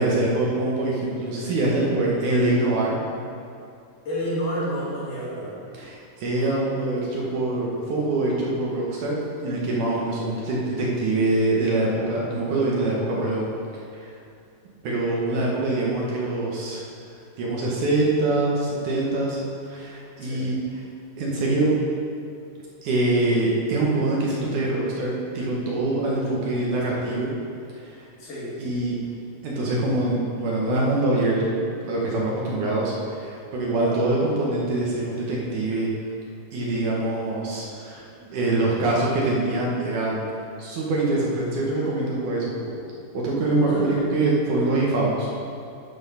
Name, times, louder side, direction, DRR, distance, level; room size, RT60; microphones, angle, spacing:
voice 1, 0.0-3.0 5.7-9.2 9.4-13.5 13.9-14.1 14.8-16.8 17.4-20.6 21.2-21.8 22.8-27.3 27.8-28.0 28.6-29.0 29.4-31.6 31.8-35.9 36.5-40.2 40.6-42.8 43.1-45.3, right 2 dB, 65° right, -4 dB, 2.7 m, -24 dB
voice 2, 4.1-5.6 20.2-20.5 28.2-28.6 33.7-34.0 43.6-44.1, equal, 65° left, -8 dB, 3.9 m, -30 dB
12.0 x 4.5 x 5.6 m, 2.5 s
omnidirectional pair, 4.0 m